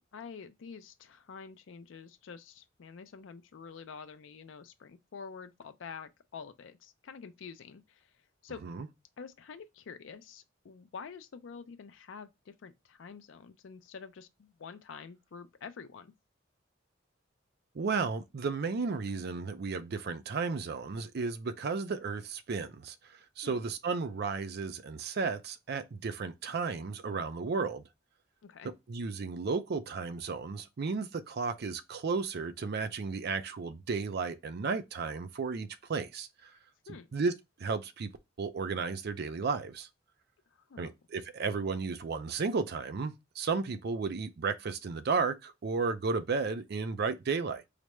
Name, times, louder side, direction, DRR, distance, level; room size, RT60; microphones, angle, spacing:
voice 1, 0.1-8.1 8.4-8.6 9.2-16.1 23.4-23.6 28.4-28.7 36.9-37.1 40.5-40.9, left 5 dB, 80° left, 0.4 m, -47 dB
voice 2, 17.7-23.0 23.4-27.8 28.9-36.5 37.1-37.3 37.6-38.1 38.4-39.9 40.8-47.7, right 4 dB, 55° right, 0.5 m, -33 dB
4.9 x 2.2 x 3.0 m
head